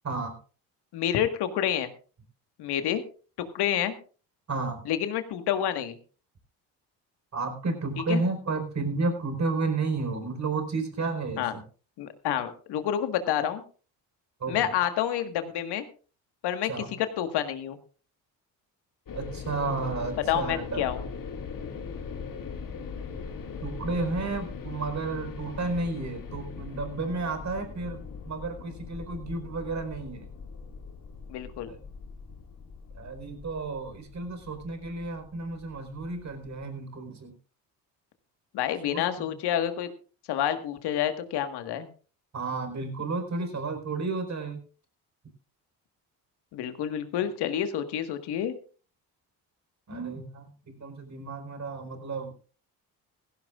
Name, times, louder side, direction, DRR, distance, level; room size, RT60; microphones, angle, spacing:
voice 1, 0.0-0.3 4.5-4.8 7.3-11.6 14.4-14.7 16.7-16.9 19.1-20.9 23.6-30.3 31.7-31.8 32.9-37.3 38.8-39.3 42.3-44.6 49.9-52.3, right 3 dB, 45° right, 6 dB, 4.6 m, -32 dB
voice 2, 0.9-1.9 2.6-3.0 3.5-3.9 4.8-6.0 8.1-8.2 11.4-11.5 12.0-13.6 14.5-15.8 16.4-17.8 20.3-21.0 31.3-31.7 38.5-39.9 40.3-41.9 46.5-48.5, left 10 dB, 75° left, 8 dB, 1.7 m, -28 dB
sound 1, 19.1-36.7, left 5 dB, 55° left, 2.3 m, -40 dB
17.0 x 15.5 x 2.5 m, 0.38 s
supercardioid pair, 65°, 40 cm